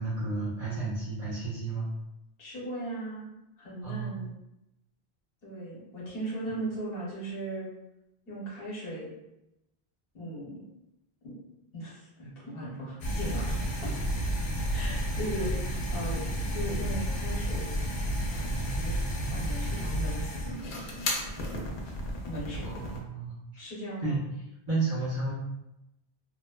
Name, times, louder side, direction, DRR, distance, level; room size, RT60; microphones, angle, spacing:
voice 1, 0.0-1.9 3.8-4.2 22.6-23.3 24.0-24.2 24.7-25.3, right 3 dB, 45° right, -10 dB, 1.1 m, -32 dB
voice 2, 2.4-4.3 5.4-7.7 8.3-9.1 10.1-10.6 11.2-11.3 11.7-13.9 14.7-17.7 18.3-19.0 19.3-21.1 22.2-22.9 23.6-24.2, right 1 dB, 65° left, -6 dB, 1.1 m, -38 dB
sound 1, 13.0-23.0, equal, 90° left, 0.8 m, -31 dB
2.8 x 2.1 x 2.2 m, 0.90 s
omnidirectional pair, 1.0 m